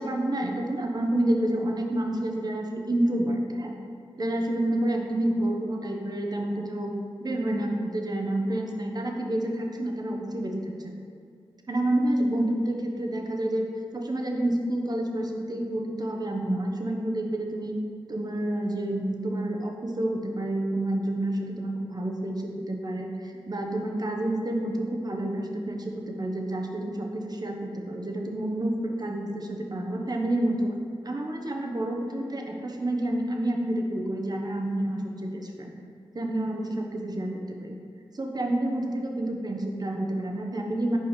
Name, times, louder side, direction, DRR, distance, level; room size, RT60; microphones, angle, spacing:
voice 1, 0.0-3.7 4.2-6.9 7.2-10.9 11.7-13.6 13.9-17.7 18.1-30.7 31.0-35.7 36.1-37.8 38.1-41.0, right 1 dB, 45° right, 1 dB, 1.1 m, -29 dB
7.8 x 5.0 x 5.0 m, 2.3 s
cardioid pair, 55°, 10 cm